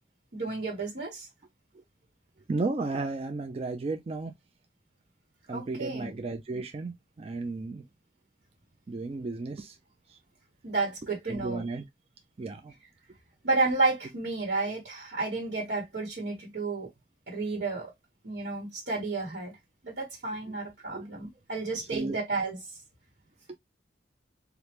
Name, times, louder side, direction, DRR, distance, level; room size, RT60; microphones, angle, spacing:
voice 1, 0.3-1.3 5.5-6.1 10.6-11.6 13.4-16.9 17.3-17.9 18.2-19.5 19.8-22.6, right 3 dB, 80° right, 1.3 m, -31 dB
voice 2, 2.5-4.3 5.5-7.8 8.9-9.8 10.1-10.2 11.3-11.8 12.4-12.7 20.4-20.5 20.9-21.1 21.9-22.2 23.5-23.6, right 3 dB, 35° right, 0.3 m, -34 dB
3.2 x 2.5 x 2.9 m
head